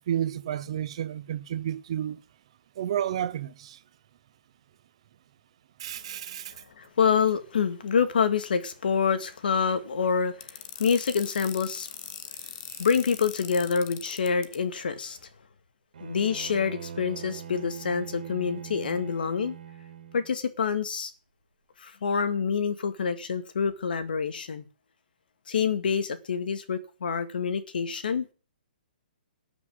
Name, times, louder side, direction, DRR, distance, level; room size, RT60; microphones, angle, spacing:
voice 1, 0.1-2.2 2.8-3.8 5.8-6.5, right 10 dB, 35° right, 0.8 m, -31 dB
voice 2, 6.8-11.9 12.8-15.2 16.0-19.5 20.1-21.1 21.8-24.7 25.5-28.3, left 6 dB, 70° left, 2.1 m, -27 dB
sound 1, 10.4-14.6, left 12 dB, 15° left, 0.6 m, -40 dB
Bowed string instrument, 15.9-20.4, right 8 dB, 60° right, 3.8 m, -42 dB
13.0 x 6.1 x 9.5 m
hypercardioid pair, 180°, 5 cm